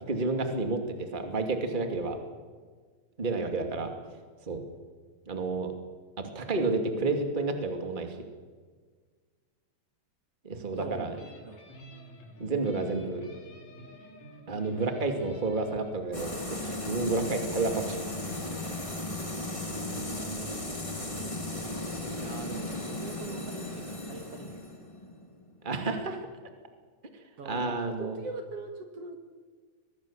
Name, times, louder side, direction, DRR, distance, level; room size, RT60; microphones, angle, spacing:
voice 1, 0.0-2.2 3.2-3.9 4.5-4.6 5.3-5.7 6.2-8.2 10.4-11.2 12.4-13.2 14.5-16.3 16.6-18.0 25.6-26.2 27.4-28.2, right 3 dB, 15° right, 5 dB, 2.3 m, -30 dB
voice 2, 10.8-11.7 20.1-21.8 22.2-24.6 27.4-29.2, right 4 dB, 55° right, 5 dB, 2.7 m, -42 dB
sound 1, 10.9-15.9, right 1 dB, 65° left, 5.3 m, -49 dB
sound 2, 16.1-25.7, left 1 dB, 10° left, 1.9 m, -36 dB
24.0 x 19.5 x 7.4 m, 1.5 s
omnidirectional pair, 3.4 m